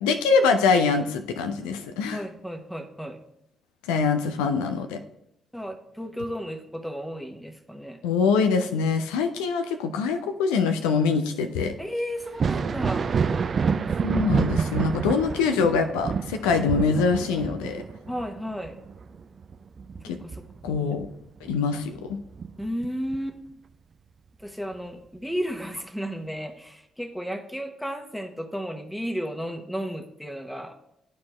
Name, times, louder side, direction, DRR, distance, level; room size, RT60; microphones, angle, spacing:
voice 1, 0.0-2.2 3.9-5.0 8.0-11.7 14.0-17.8 20.0-20.2 20.6-21.1 21.4-22.2, left 5 dB, 70° left, 7 dB, 0.5 m, -24 dB
voice 2, 2.1-3.2 5.5-8.0 11.8-13.1 18.1-18.8 20.2-20.9 22.6-23.4 24.4-30.7, equal, 5° left, 5 dB, 1.1 m, -33 dB
Thunder, 12.2-21.6 21.9-23.2 24.7-24.8 25.6-25.8, right 5 dB, 45° right, 0.4 m, -28 dB
11.0 x 4.3 x 3.1 m, 0.80 s
figure-of-eight pair, 40°, 0 cm